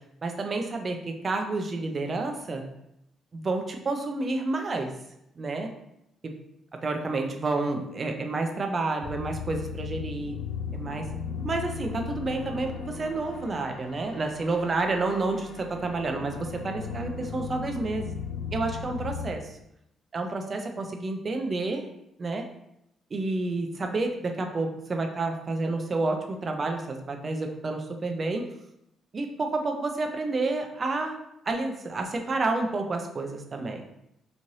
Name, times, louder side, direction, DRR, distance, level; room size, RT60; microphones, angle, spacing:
voice 1, 0.2-2.6 3.3-4.9 5.4-5.7 6.2-6.3 6.8-10.4 10.7-11.1 11.4-18.1 18.5-19.5 20.1-21.9 22.2-22.4 23.1-28.4 29.1-33.8, right 3 dB, 40° right, 4 dB, 0.5 m, -30 dB
sound 1, 9.0-19.3, left 6 dB, 80° left, 0.4 m, -37 dB
3.1 x 2.5 x 2.7 m, 0.80 s
cardioid pair, 90°, 0 cm